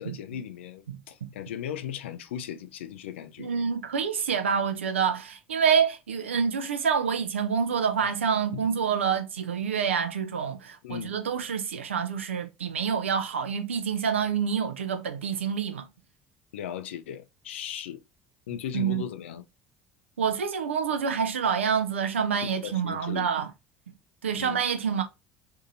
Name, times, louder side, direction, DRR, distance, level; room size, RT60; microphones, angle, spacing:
voice 1, 0.0-3.5 8.5-8.6 10.8-11.1 16.5-18.0 18.5-19.4 22.4-23.3 24.3-24.6, left 10 dB, 75° left, 0.3 m, -37 dB
voice 2, 3.4-15.9 18.7-19.0 20.2-23.5 24.2-25.0, right 7 dB, 85° right, 0.4 m, -27 dB
2.6 x 2.5 x 2.6 m
figure-of-eight pair, 60°, 7 cm